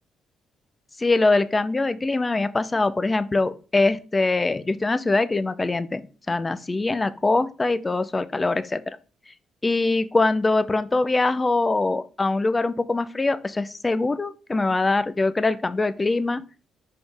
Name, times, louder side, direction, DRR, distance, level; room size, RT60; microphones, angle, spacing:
voice 1, 1.0-9.0 9.6-16.4, left 3 dB, 20° left, 13 dB, 0.6 m, -23 dB
5.6 x 5.0 x 3.4 m, 0.35 s
cardioid pair, 90°, 0 cm